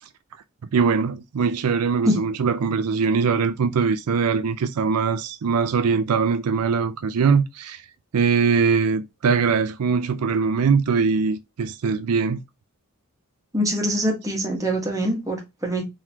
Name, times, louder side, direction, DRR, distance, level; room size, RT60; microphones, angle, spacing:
voice 1, 0.7-7.8 8.1-12.4, right 5 dB, 85° right, 0.4 m, -21 dB
voice 2, 13.5-15.9, equal, 15° right, 1.3 m, -24 dB
3.9 x 3.0 x 2.8 m
head